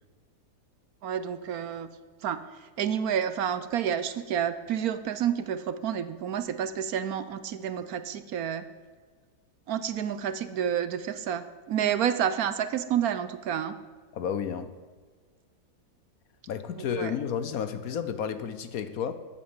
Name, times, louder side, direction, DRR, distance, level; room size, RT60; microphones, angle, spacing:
voice 1, 1.0-1.9 2.2-2.4 2.8-8.7 9.7-13.7 17.0-17.1, right 9 dB, 65° right, 1.1 m, -29 dB
voice 2, 14.1-14.8 16.5-19.1, left 8 dB, 65° left, 1.1 m, -31 dB
13.5 x 8.5 x 8.1 m
omnidirectional pair, 1.8 m